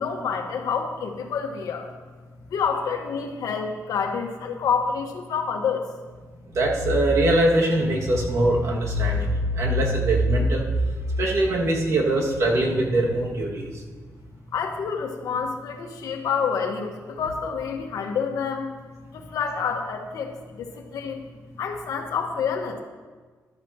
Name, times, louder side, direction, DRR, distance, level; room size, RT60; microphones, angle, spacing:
voice 1, 0.0-1.9 2.5-5.9 14.5-18.7 19.1-21.2 21.6-22.8, left 6 dB, 85° left, 3 dB, 1.3 m, -28 dB
voice 2, 6.5-10.6 11.2-13.7, right 1 dB, 55° right, -1 dB, 2.0 m, -22 dB
13.5 x 12.0 x 2.9 m, 1.4 s
cardioid pair, 125°, 6 cm